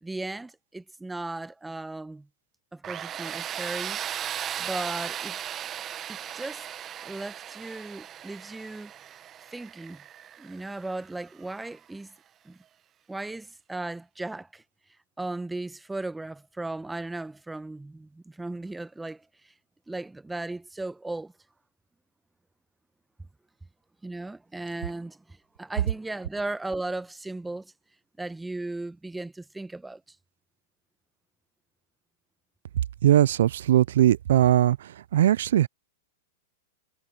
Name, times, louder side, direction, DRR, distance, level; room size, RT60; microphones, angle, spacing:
voice 1, 0.0-2.3 2.7-4.0 4.6-5.4 6.1-6.7 7.0-8.9 9.5-10.0 10.4-12.1 12.4-12.6 13.1-14.6 15.2-19.5 19.9-21.3 24.0-27.7 28.2-30.2, right 2 dB, 5° right, 1.1 m, -36 dB
Tools, 2.8-11.6, right 10 dB, 30° right, 0.9 m, -37 dB
voice 2, 33.0-35.7, right 12 dB, 70° right, 0.3 m, -20 dB
hypercardioid pair, 115°, 0 cm